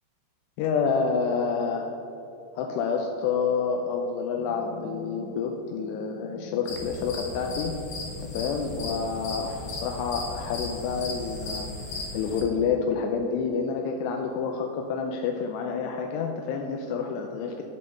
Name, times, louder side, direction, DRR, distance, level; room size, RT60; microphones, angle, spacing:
voice 1, 0.6-1.9 2.6-7.7 8.3-11.7 12.1-17.6, left 5 dB, 85° left, 3 dB, 2.8 m, -28 dB
sound 1, 4.3-12.3, left 2 dB, 55° right, 2.4 m, -47 dB
sound 2, 6.7-12.4, left 3 dB, 55° left, 2.6 m, -36 dB
11.5 x 5.4 x 6.4 m, 3.0 s
omnidirectional pair, 4.8 m